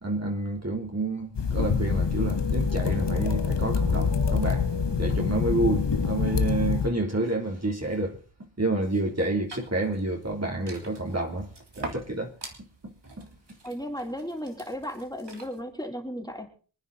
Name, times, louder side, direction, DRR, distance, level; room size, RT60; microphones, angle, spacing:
voice 1, 0.0-4.7 5.0-8.2 8.6-11.5 11.7-12.3 13.2-13.3, right 2 dB, 35° right, 3.2 m, -29 dB
sound 1, 1.4-6.9, left 5 dB, 80° left, 1.2 m, -25 dB
sound 2, 9.4-15.6, right 2 dB, 75° right, 3.3 m, -44 dB
voice 2, 13.6-16.5, equal, 10° left, 3.8 m, -35 dB
26.0 x 10.0 x 4.1 m
wide cardioid pair, 65°, 42 cm